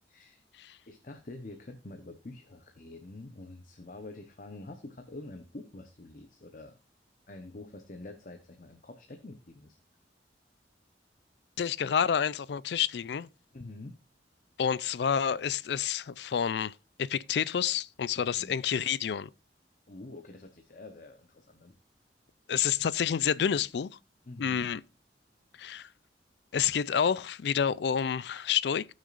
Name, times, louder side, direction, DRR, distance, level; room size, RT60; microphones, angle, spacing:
voice 1, 0.1-0.4 0.9-6.8 7.3-9.8 13.5-14.0 18.2-18.6 19.9-21.7 24.3-24.7, left 2 dB, 45° left, 0.9 m, -46 dB
voice 2, 11.6-13.3 14.6-16.7 17.0-19.3 22.5-23.9 24.4-24.8 25.6-25.9 26.5-28.9, left 8 dB, 65° left, 0.4 m, -29 dB
17.5 x 6.4 x 2.5 m
head